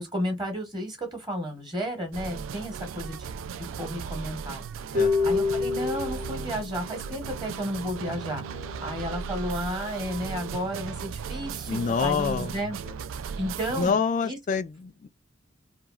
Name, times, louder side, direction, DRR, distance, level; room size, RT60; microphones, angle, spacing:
voice 1, 0.0-3.3 3.8-4.6 5.2-12.8 13.4-14.0 14.2-14.4, equal, 25° right, 0.9 m, -32 dB
sound 1, 2.1-13.9, right 6 dB, 85° right, 0.3 m, -36 dB
voice 2, 4.9-5.3 11.7-12.6 13.8-15.1, left 6 dB, 40° left, 0.3 m, -27 dB
Harp, 4.9-11.0, left 4 dB, 55° right, 0.7 m, -31 dB
2.9 x 2.3 x 2.3 m
head